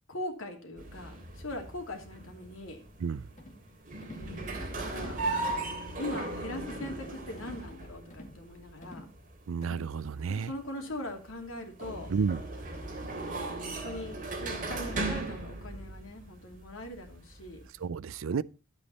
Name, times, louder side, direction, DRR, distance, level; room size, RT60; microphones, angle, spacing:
voice 1, 0.1-2.8 4.2-5.6 6.0-9.0 10.3-12.1 13.8-17.6, left 1 dB, 85° left, 2.8 m, -41 dB
sound 1, 0.8-17.8, right 2 dB, 40° right, 3.1 m, -38 dB
sound 2, 3.4-3.6 4.0-4.3 4.7-4.9 5.4-5.7 6.0-6.4 6.7-7.0 7.4-7.7 8.1-8.4 8.8-9.1 9.6-9.9, left 1 dB, 35° left, 2.2 m, -48 dB
voice 2, 9.5-10.5 12.1-12.4 17.8-18.4, right 5 dB, 85° right, 0.4 m, -31 dB
11.5 x 8.3 x 4.2 m
head